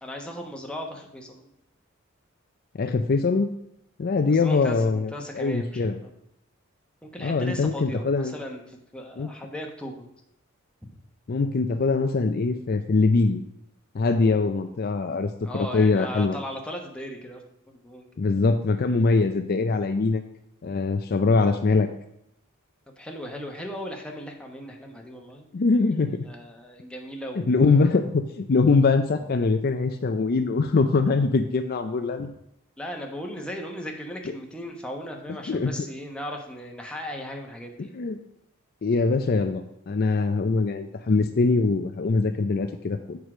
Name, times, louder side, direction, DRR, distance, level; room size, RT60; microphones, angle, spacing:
voice 1, 0.0-1.5 4.3-6.1 7.0-10.1 15.4-18.1 22.9-25.5 26.3-27.8 32.2-32.3 32.8-38.0 41.1-41.2, equal, 5° left, 1 dB, 1.2 m, -37 dB
voice 2, 2.8-3.5 4.0-5.1 5.4-6.0 7.2-8.3 9.2-9.3 11.3-13.4 13.9-16.4 18.2-20.2 20.6-21.9 25.5-26.2 27.4-32.3 35.5-35.7 37.9-38.2 38.8-43.2, left 3 dB, 45° left, 8 dB, 0.5 m, -23 dB
8.3 x 4.7 x 6.1 m, 0.77 s
head